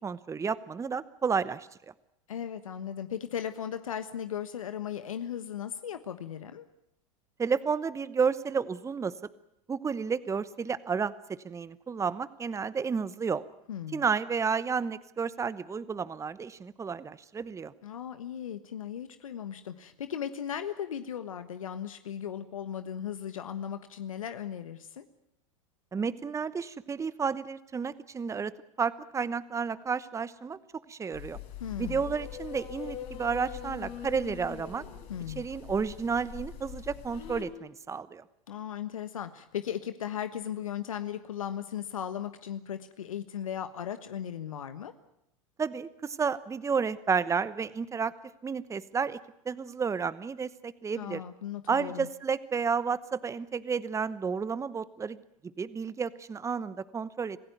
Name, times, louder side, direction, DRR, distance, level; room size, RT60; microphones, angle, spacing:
voice 1, 0.0-1.7 7.4-9.1 9.7-13.4 13.9-17.7 25.9-28.5 28.8-30.6 30.9-31.4 31.8-34.8 35.4-38.2 45.6-48.1 48.4-49.2 49.4-51.2 51.7-55.2 55.6-57.4, right 5 dB, 15° right, 16 dB, 1.0 m, -31 dB
voice 2, 2.3-6.6 13.7-14.0 17.8-25.0 31.6-32.0 35.1-35.4 38.5-44.9 51.0-52.1, left 9 dB, 85° left, 10 dB, 1.3 m, -37 dB
sound 1, 31.1-37.4, left 9 dB, 60° left, 6.0 m, -42 dB
26.5 x 16.0 x 9.4 m, 0.80 s
hypercardioid pair, 95°, 17 cm